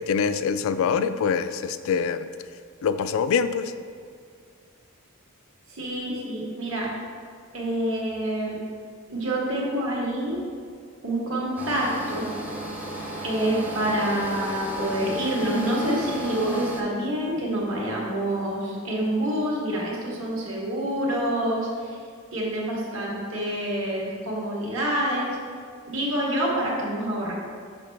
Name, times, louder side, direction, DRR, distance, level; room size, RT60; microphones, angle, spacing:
voice 1, 0.0-2.3 2.8-3.7, left 6 dB, 70° left, 12 dB, 0.3 m, -24 dB
voice 2, 5.7-6.9 7.5-8.6 9.1-10.4 11.0-12.3 13.2-22.0 22.3-25.4 25.9-27.3, right 1 dB, 65° right, -4 dB, 1.6 m, -27 dB
sound 1, 11.6-16.8, equal, 5° right, 0.6 m, -34 dB
6.7 x 5.5 x 3.3 m, 2.1 s
head